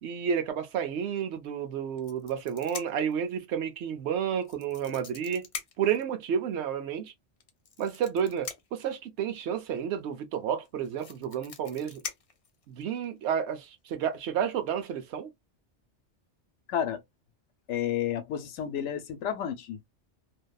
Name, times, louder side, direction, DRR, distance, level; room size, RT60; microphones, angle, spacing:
voice 1, 0.0-5.5 5.8-7.1 7.8-12.0 12.7-15.3, right 8 dB, 75° right, 0.9 m, -31 dB
sound 1, 2.0-3.1 4.4-6.0 7.4-8.9 10.3-10.4 10.6-13.0 13.9-14.1 14.5-14.7, left 6 dB, 50° left, 0.4 m, -42 dB
voice 2, 16.7-17.0 17.7-19.9, left 9 dB, 85° left, 0.9 m, -31 dB
2.6 x 2.2 x 2.2 m
omnidirectional pair, 1.2 m